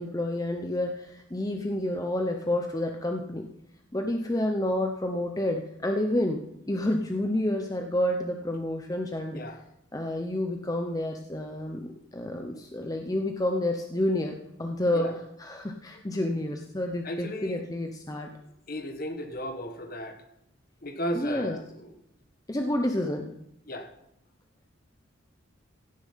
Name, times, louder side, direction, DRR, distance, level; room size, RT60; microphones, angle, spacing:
voice 1, 0.0-3.5 3.9-9.4 9.9-15.1 15.4-18.3 21.1-21.6 22.5-23.3, left 1 dB, 20° left, 4 dB, 0.7 m, -29 dB
voice 2, 17.0-17.6 18.7-20.2 20.8-21.9 23.7-23.9, equal, 45° left, 6 dB, 1.4 m, -35 dB
16.5 x 7.1 x 5.7 m, 0.83 s
head